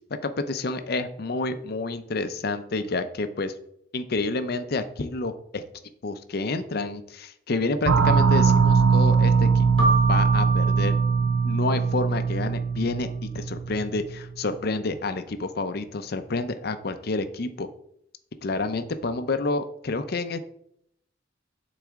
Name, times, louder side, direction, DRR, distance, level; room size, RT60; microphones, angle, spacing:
voice 1, 0.1-3.5 3.9-5.6 6.0-10.9 11.4-17.7 18.4-20.4, left 3 dB, 55° left, 10 dB, 0.6 m, -29 dB
sound 1, 7.9-14.2, right 5 dB, 85° right, 0.6 m, -21 dB
Keyboard (musical), 9.8-12.3, right 3 dB, 25° right, 2.3 m, -28 dB
9.0 x 4.1 x 3.6 m, 0.71 s
head